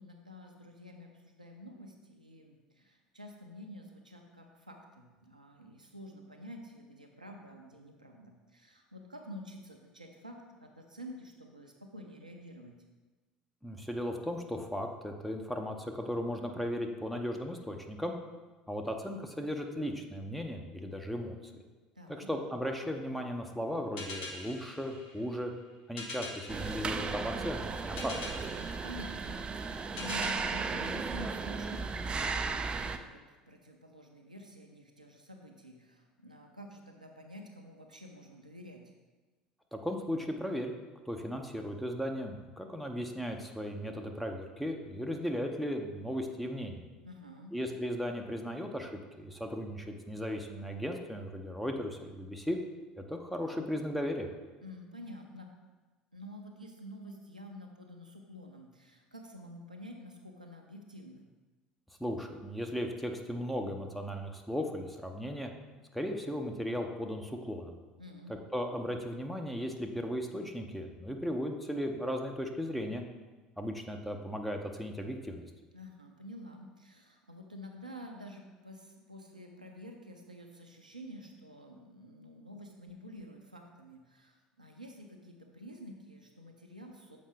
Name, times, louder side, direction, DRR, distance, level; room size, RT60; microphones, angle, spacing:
voice 1, 0.0-12.8 22.0-22.3 28.6-38.9 47.0-47.5 54.6-55.5 56.1-61.3 68.0-68.4 75.7-87.2, equal, 85° right, 2 dB, 0.6 m, -49 dB
voice 2, 13.6-18.2 18.7-21.6 22.1-25.5 25.9-28.1 39.7-40.7 41.1-46.8 47.5-48.9 49.2-52.6 53.1-54.3 62.0-65.5 65.9-67.8 68.5-73.0 73.6-75.4, equal, ahead, 3 dB, 0.7 m, -36 dB
sound 1, 24.0-31.8, left 2 dB, 55° left, 1.0 m, -46 dB
sound 2, 26.5-33.0, right 4 dB, 25° right, 0.4 m, -35 dB
7.3 x 4.9 x 3.4 m, 1.3 s
figure-of-eight pair, 65°, 4 cm